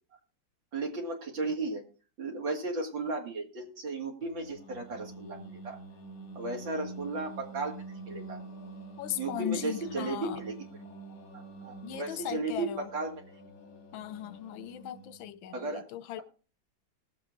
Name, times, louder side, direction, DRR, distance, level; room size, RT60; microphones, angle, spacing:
voice 1, 0.7-1.8 2.2-5.8 6.3-7.8 8.1-8.4 9.2-10.5 11.3-13.2 15.5-15.8, right 3 dB, 75° right, 3.0 m, -35 dB
Singing, 4.2-15.4, right 2 dB, 55° left, 2.1 m, -46 dB
voice 2, 9.0-10.4 11.8-12.9 13.9-16.2, left 12 dB, 85° left, 1.5 m, -38 dB
19.5 x 7.3 x 3.6 m
omnidirectional pair, 2.1 m